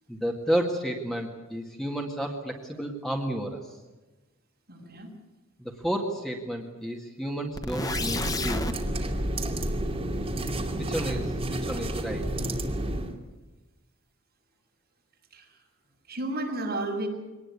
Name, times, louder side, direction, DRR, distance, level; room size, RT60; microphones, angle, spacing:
voice 1, 0.1-3.7 5.6-8.7 10.9-12.3, right 1 dB, ahead, 1 dB, 1.9 m, -31 dB
voice 2, 4.7-5.1 10.8-11.0 15.3-15.5 16.1-17.1, right 2 dB, 50° right, 0 dB, 6.8 m, -32 dB
sound 1, 7.5-8.7, left 3 dB, 20° left, 1.0 m, -31 dB
sound 2, 7.8-13.1, right 1 dB, 30° right, 2.7 m, -30 dB
23.5 x 19.5 x 8.4 m, 1.2 s
head